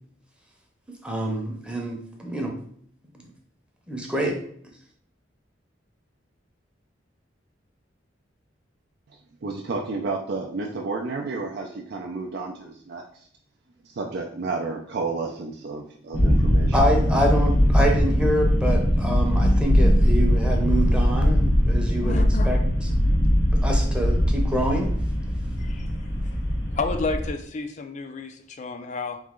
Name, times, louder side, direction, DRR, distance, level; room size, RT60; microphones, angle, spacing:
voice 1, 1.0-2.5 3.2-3.3 3.9-4.4 16.7-22.6 23.6-24.9, right 1 dB, 5° right, 1 dB, 0.7 m, -26 dB
voice 2, 9.4-13.3 13.8-16.8, right 3 dB, 60° right, 0 dB, 0.4 m, -31 dB
sound 1, 16.1-27.3, equal, 75° left, 1.0 m, -21 dB
voice 3, 22.0-22.5 25.6-25.9 26.2-26.4 26.7-29.2, left 4 dB, 40° left, 7 dB, 0.4 m, -31 dB
3.8 x 3.1 x 3.7 m, 0.62 s
head